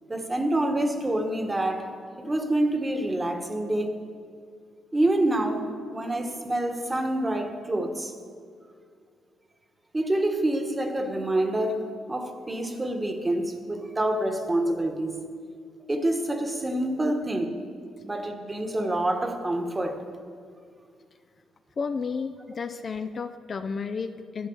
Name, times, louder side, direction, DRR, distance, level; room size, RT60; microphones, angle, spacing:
voice 1, 0.1-1.9 2.2-3.9 4.9-5.7 5.9-8.1 9.9-15.2 15.9-17.6 18.0-20.1, right 1 dB, 15° right, 6 dB, 1.3 m, -27 dB
voice 2, 21.8-24.5, left 5 dB, 40° left, 9 dB, 0.5 m, -32 dB
11.5 x 10.5 x 7.1 m, 2.2 s
cardioid pair, 110°, 0 cm